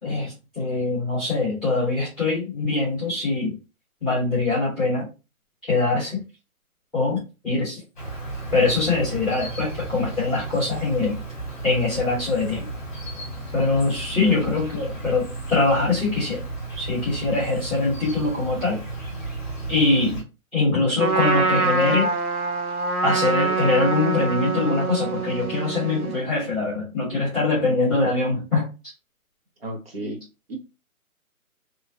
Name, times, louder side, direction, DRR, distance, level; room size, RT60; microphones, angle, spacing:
voice 1, 0.0-3.5 4.0-5.0 5.7-6.2 6.9-7.8 8.5-11.2 11.6-12.7 13.5-16.4 16.8-18.8 19.7-20.2 20.5-22.1 23.0-28.6, left 3 dB, ahead, -8 dB, 1.2 m, -23 dB
Insect, 8.0-20.2, right 2 dB, 30° left, 1.1 m, -34 dB
Trumpet, 21.0-26.2, right 4 dB, 90° right, 1.1 m, -25 dB
voice 2, 29.6-30.2 30.5-30.6, right 1 dB, 45° right, 1 dB, 1.0 m, -32 dB
3.0 x 2.4 x 2.6 m, 0.29 s
hypercardioid pair, 175°, 43 cm